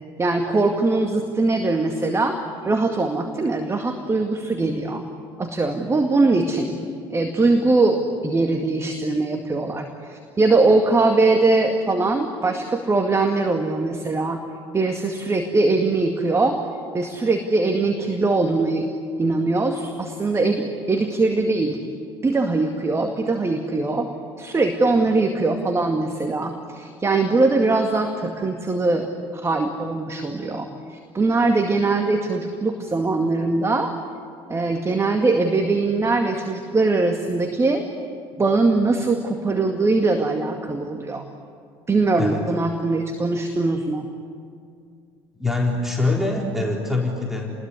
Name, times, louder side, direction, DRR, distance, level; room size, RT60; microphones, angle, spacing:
voice 1, 0.2-2.4 2.6-5.0 5.4-6.8 7.1-14.4 14.7-16.6 16.9-18.9 19.2-21.8 22.2-24.1 24.4-29.1 29.3-33.9 34.5-37.8 38.4-41.2 41.9-44.1, right 3 dB, 20° right, 4 dB, 2.1 m, -21 dB
voice 2, 45.4-47.5, left 2 dB, ahead, -1 dB, 4.0 m, -24 dB
29.0 x 21.0 x 9.8 m, 2.3 s
figure-of-eight pair, 60°, 13 cm